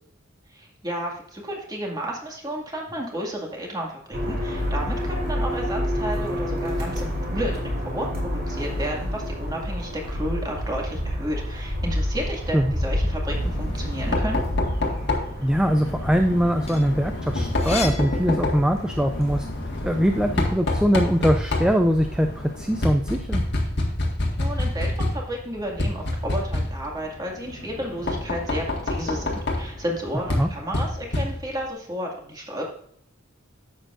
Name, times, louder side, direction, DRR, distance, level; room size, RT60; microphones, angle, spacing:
voice 1, 0.5-7.6 7.9-14.5 24.4-32.6, equal, 20° right, -1 dB, 2.2 m, -32 dB
sound 1, 4.1-22.5, equal, 50° right, 2.9 m, -30 dB
Knock, 13.3-31.7, left 2 dB, 55° left, 1.8 m, -28 dB
voice 2, 15.4-19.5 19.8-23.4 30.4-30.5, equal, 5° right, 5 dB, 0.5 m, -22 dB
sound 2, 16.6-19.1 19.5-20.9, left 5 dB, 30° left, 1.2 m, -37 dB
11.0 x 7.7 x 2.6 m, 0.64 s
head